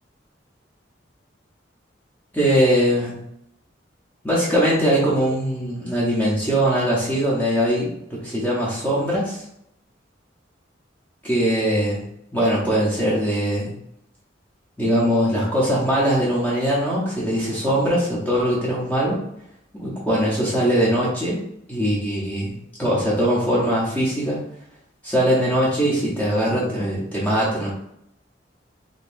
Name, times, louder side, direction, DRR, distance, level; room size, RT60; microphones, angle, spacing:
voice 1, 2.3-3.2 4.2-9.4 11.2-12.0 12.3-13.7 14.8-19.2 19.7-21.4 21.7-22.5 22.8-24.4 25.0-27.7, equal, 10° left, -7 dB, 0.8 m, -21 dB
3.9 x 2.9 x 2.5 m, 0.75 s
head